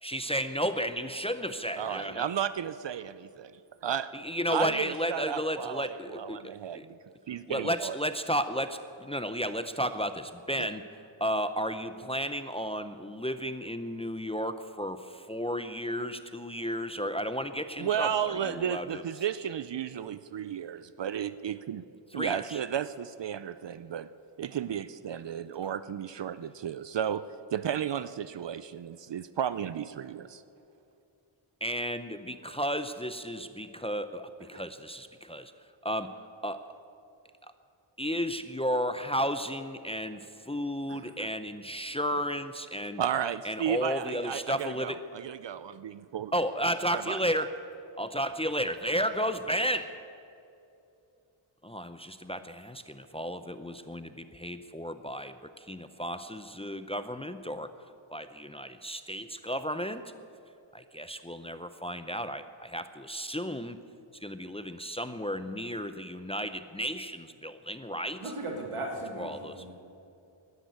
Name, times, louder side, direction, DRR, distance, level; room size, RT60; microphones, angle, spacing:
voice 1, 0.0-2.3 4.1-6.9 7.5-10.8 11.2-19.0 22.1-22.6 31.6-35.5 35.8-36.1 36.4-36.6 38.0-43.0 43.4-45.0 46.3-47.5 48.0-49.9 51.6-57.7 58.1-60.0 60.7-63.8 64.2-68.3 69.2-69.6, equal, 10° left, 10 dB, 0.6 m, -33 dB
voice 2, 1.8-3.5 3.8-4.1 4.5-7.0 7.3-8.0 10.6-10.7 17.8-21.8 22.1-24.1 24.4-27.2 27.5-30.4 34.5-34.6 40.9-41.3 43.0-46.3 46.9-47.2, right 9 dB, 60° right, 14 dB, 0.5 m, -33 dB
voice 3, 68.2-69.8, right 1 dB, 90° right, 1 dB, 2.6 m, -37 dB
12.5 x 10.5 x 9.4 m, 2.6 s
wide cardioid pair, 70°, 49 cm